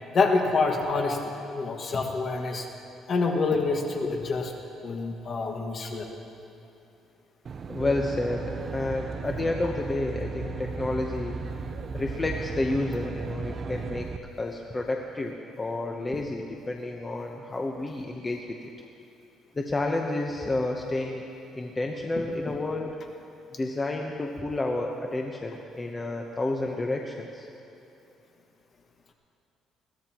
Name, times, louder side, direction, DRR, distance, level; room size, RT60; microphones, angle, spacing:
voice 1, 0.1-1.2 1.5-2.7 3.1-4.5 4.8-6.1, left 4 dB, 45° left, 2 dB, 1.7 m, -26 dB
Aircraft, 7.5-14.2, right 4 dB, 40° right, 0.5 m, -35 dB
voice 2, 7.7-11.4 11.9-14.1 14.4-18.7 19.6-21.2 21.5-22.9 23.6-27.5, left 2 dB, 20° left, 1 dB, 0.9 m, -30 dB
21.5 x 16.0 x 3.0 m, 2.9 s
cardioid pair, 115°, 0 cm